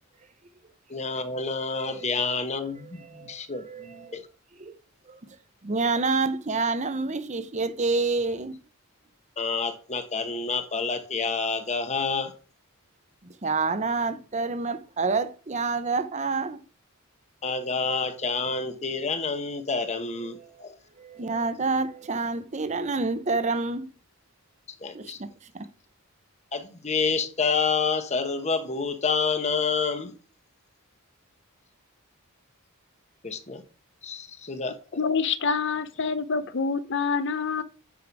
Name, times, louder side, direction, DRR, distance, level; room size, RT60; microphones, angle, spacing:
voice 1, 0.9-4.3 9.4-12.3 17.4-20.8 24.8-25.2 26.5-30.1 33.2-33.6 34.0-34.8, left 4 dB, 30° left, 1.0 m, -28 dB
voice 2, 3.7-4.1 4.6-4.7 5.1-5.3 5.6-8.5 13.2-16.6 21.0-23.9 24.9-25.3 25.5-25.7, right 3 dB, 30° right, 0.7 m, -28 dB
voice 3, 34.9-37.6, left 5 dB, 55° left, 0.7 m, -26 dB
8.7 x 5.6 x 4.7 m
head